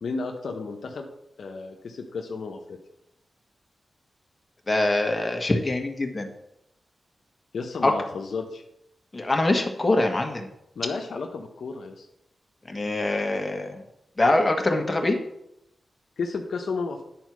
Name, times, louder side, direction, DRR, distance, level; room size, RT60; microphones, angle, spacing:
voice 1, 0.0-1.1 1.4-2.8 7.5-8.6 10.7-12.1 16.2-17.0, left 4 dB, 80° left, 2 dB, 0.9 m, -32 dB
voice 2, 4.7-6.3 7.8-7.9 9.1-10.5 12.7-13.8 14.2-15.2, left 2 dB, 30° left, 3 dB, 1.6 m, -23 dB
10.0 x 4.5 x 6.2 m, 0.82 s
cardioid pair, 55°, 0 cm